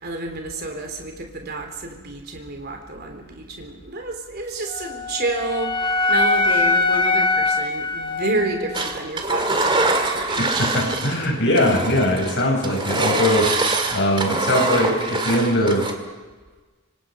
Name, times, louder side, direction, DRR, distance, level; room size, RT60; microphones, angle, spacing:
voice 1, 0.0-10.4 10.8-10.9, right 2 dB, 45° right, 4 dB, 3.7 m, -29 dB
Wind instrument woodwind instrument, 4.7-8.9, left 3 dB, 20° left, 1.2 m, -22 dB
Engine, 8.7-11.3 11.6-15.9, right 2 dB, 20° right, 2.1 m, -24 dB
voice 2, 10.4-15.9, left 1 dB, 55° left, 0 dB, 7.3 m, -21 dB
26.0 x 24.5 x 5.3 m, 1.3 s
head